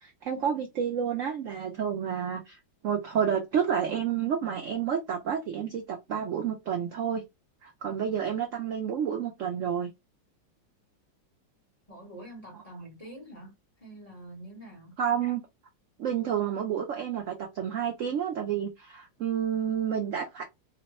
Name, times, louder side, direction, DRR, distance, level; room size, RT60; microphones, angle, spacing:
voice 1, 0.0-7.2 7.6-9.9 15.0-15.4 16.0-20.4, right 8 dB, 70° right, 0.7 m, -30 dB
voice 2, 11.9-13.5 13.8-15.0, right 1 dB, 25° left, 1.0 m, -46 dB
3.1 x 2.1 x 4.0 m
omnidirectional pair, 2.0 m